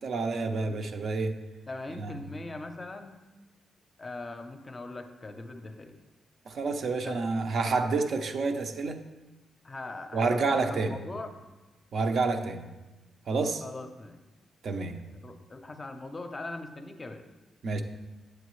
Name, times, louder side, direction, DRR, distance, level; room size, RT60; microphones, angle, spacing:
voice 1, 0.0-1.4 2.0-2.1 6.5-9.0 10.1-11.0 11.9-12.7 13.3-13.6 14.6-15.0 17.6-17.8, right 3 dB, 55° right, 6 dB, 0.7 m, -29 dB
voice 2, 1.7-3.1 4.0-6.0 6.9-7.2 9.6-11.3 13.6-14.2 15.1-17.2, left 2 dB, 25° left, 6 dB, 0.6 m, -40 dB
9.0 x 7.7 x 3.1 m, 1.1 s
cardioid pair, 130°, 0 cm